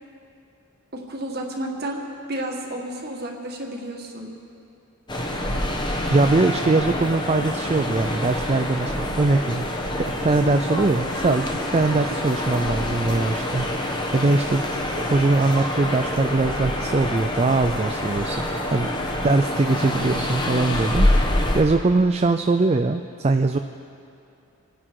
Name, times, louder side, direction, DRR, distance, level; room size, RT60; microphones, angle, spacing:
voice 1, 0.9-2.0 2.3-4.3 12.0-12.2, right 1 dB, 45° right, 0 dB, 2.0 m, -31 dB
sound 1, 5.1-21.6, left 1 dB, 20° left, 1.2 m, -26 dB
voice 2, 6.1-9.7 10.2-18.9 19.2-23.6, right 3 dB, 30° right, 7 dB, 0.4 m, -22 dB
27.0 x 9.9 x 4.7 m, 2.6 s
head